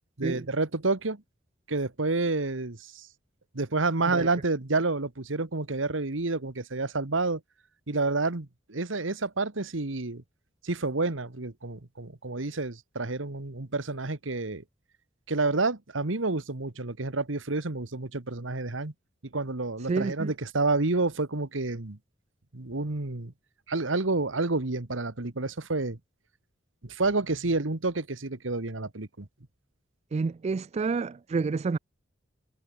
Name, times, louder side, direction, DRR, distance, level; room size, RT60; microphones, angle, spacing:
voice 1, 0.2-1.2 1.7-3.1 3.5-7.4 7.9-10.2 10.6-14.6 15.3-18.9 19.3-22.0 22.5-23.3 23.7-26.0 26.8-29.3, right 3 dB, 85° right, 1.6 m, -29 dB
voice 2, 19.9-20.3 30.1-31.8, right 4 dB, 35° right, 0.3 m, -29 dB
head